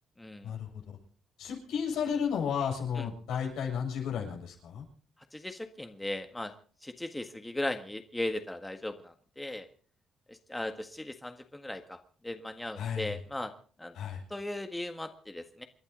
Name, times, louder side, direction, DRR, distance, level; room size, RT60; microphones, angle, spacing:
voice 1, 0.2-0.5 3.0-3.1 5.3-6.5 6.8-9.7 10.3-12.0 12.2-13.5 13.8-13.9 14.3-15.6, left 1 dB, 10° left, 7 dB, 1.7 m, -37 dB
voice 2, 1.4-4.8 12.8-13.2 13.9-14.2, left 7 dB, 85° left, 0 dB, 7.3 m, -33 dB
29.0 x 11.5 x 4.0 m, 0.42 s
cardioid pair, 90°, 0 cm